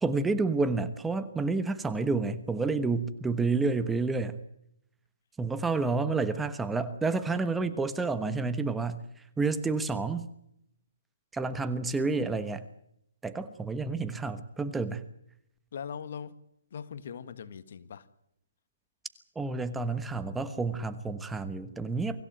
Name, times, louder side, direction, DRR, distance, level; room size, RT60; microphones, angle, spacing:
voice 1, 0.0-4.4 5.4-9.0 9.4-10.3 11.3-12.6 13.2-15.0 19.3-22.2, right 3 dB, 5° right, 1.2 m, -29 dB
voice 2, 15.7-16.4 16.7-18.1, left 7 dB, 55° left, 1.7 m, -40 dB
25.0 x 15.5 x 9.1 m
hypercardioid pair, 145°, 0 cm